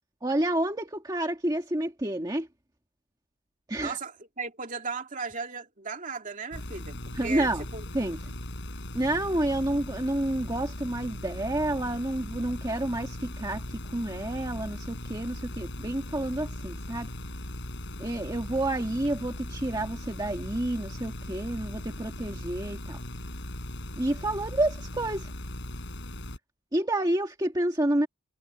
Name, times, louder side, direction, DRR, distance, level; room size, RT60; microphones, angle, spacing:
voice 1, 0.2-2.5 3.7-4.0 7.1-7.7 7.9-8.2 8.9-17.1 18.0-23.0 24.0-25.3 26.7-28.1, right 1 dB, 20° right, 1.6 m, -29 dB
voice 2, 3.8-7.8, right 4 dB, 40° right, 2.6 m, -36 dB
sound 1, 6.5-26.4, left 1 dB, 60° left, 7.1 m, -38 dB
head